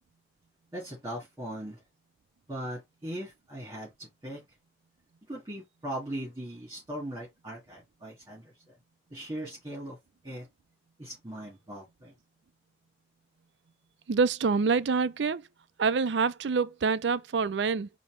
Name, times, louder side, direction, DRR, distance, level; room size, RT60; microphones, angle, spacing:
voice 1, 0.7-1.8 2.5-4.4 5.3-8.8 9.1-10.0 10.2-10.5 11.0-12.1, right 1 dB, 20° right, 2.7 m, -39 dB
voice 2, 14.1-15.5 15.8-17.9, right 5 dB, 85° right, 0.5 m, -26 dB
5.1 x 2.9 x 3.2 m
head